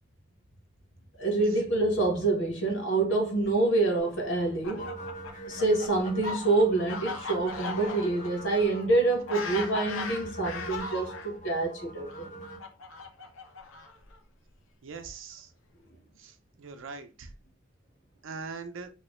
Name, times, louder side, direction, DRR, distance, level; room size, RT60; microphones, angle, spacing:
voice 1, 1.2-4.9 5.5-12.3, right 2 dB, 70° left, 1.1 m, -26 dB
Fowl, 4.4-11.3 12.1-14.1, left 3 dB, 90° left, 0.5 m, -38 dB
sound 1, 4.7-12.6, right 2 dB, 40° left, 0.6 m, -43 dB
voice 2, 14.8-15.5 16.2-17.3 18.2-18.9, right 4 dB, 85° right, 0.5 m, -41 dB
2.9 x 2.1 x 3.0 m
head